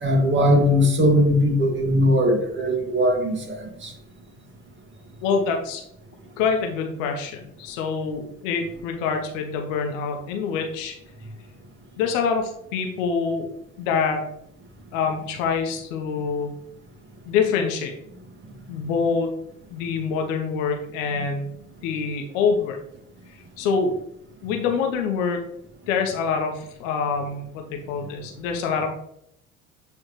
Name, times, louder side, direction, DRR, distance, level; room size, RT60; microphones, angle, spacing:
voice 1, 0.0-3.9, equal, 25° right, 1 dB, 2.0 m, -20 dB
voice 2, 5.2-5.8 6.4-10.9 12.0-13.5 13.8-14.3 14.9-16.5 17.3-17.9 18.7-19.3 19.7-21.5 21.8-22.8 23.6-23.9 24.4-25.4 25.9-28.9, left 5 dB, 60° left, 3 dB, 1.2 m, -25 dB
8.8 x 3.6 x 3.2 m, 0.75 s
figure-of-eight pair, 70°, 43 cm